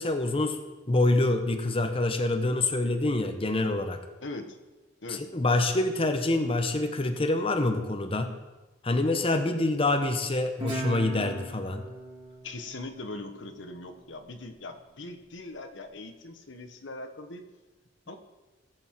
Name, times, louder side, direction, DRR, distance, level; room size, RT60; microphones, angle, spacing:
voice 1, 0.0-4.0 5.1-8.3 8.8-11.9, left 2 dB, 30° left, 7 dB, 0.9 m, -26 dB
voice 2, 4.2-4.6 5.0-5.2 12.4-17.4 18.1-18.2, left 2 dB, 85° left, 7 dB, 1.2 m, -40 dB
Guitar, 10.6-13.8, equal, 25° right, 3.0 m, -38 dB
16.5 x 8.0 x 4.6 m, 1.1 s
head